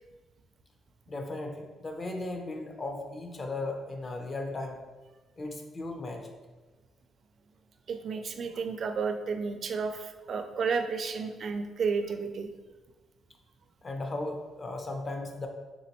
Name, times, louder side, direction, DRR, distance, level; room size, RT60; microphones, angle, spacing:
voice 1, 1.1-4.8 5.4-6.3 13.8-15.5, left 2 dB, 30° left, 4 dB, 0.6 m, -36 dB
voice 2, 7.9-12.5, right 5 dB, 50° right, 7 dB, 0.4 m, -32 dB
4.1 x 3.5 x 2.9 m, 1.2 s
cardioid pair, 125°, 0 cm